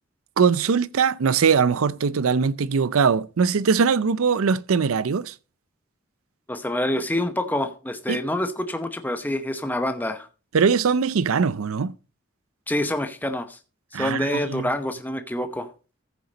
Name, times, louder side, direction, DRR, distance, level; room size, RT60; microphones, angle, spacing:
voice 1, 0.4-5.3 8.1-8.2 10.5-11.9 13.9-14.7, right 5 dB, 85° right, 0.5 m, -21 dB
voice 2, 6.5-10.3 12.7-13.6 13.9-15.7, left 1 dB, 10° left, 0.9 m, -27 dB
14.5 x 6.7 x 4.0 m
head